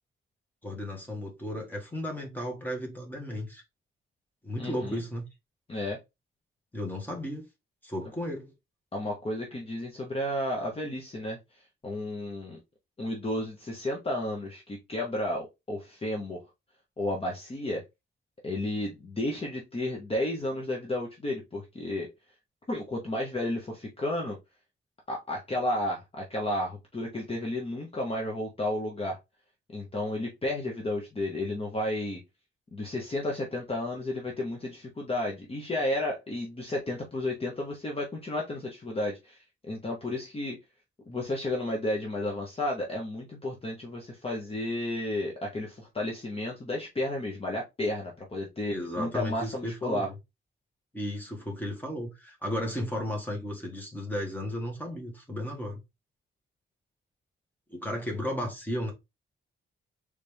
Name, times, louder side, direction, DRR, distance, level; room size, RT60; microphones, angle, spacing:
voice 1, 0.6-3.6 4.4-5.2 6.7-7.4 7.8-8.5 48.6-50.1 50.9-55.8 57.7-58.9, left 1 dB, 10° left, 1.6 m, -34 dB
voice 2, 4.6-5.0 5.7-6.0 8.9-12.6 13.0-16.4 17.0-17.8 18.4-22.1 22.7-24.4 25.1-29.2 29.7-32.2 32.7-40.6 41.0-50.1, left 1 dB, 25° left, 1.0 m, -32 dB
4.1 x 3.3 x 3.4 m
wide cardioid pair, 155°, 21 cm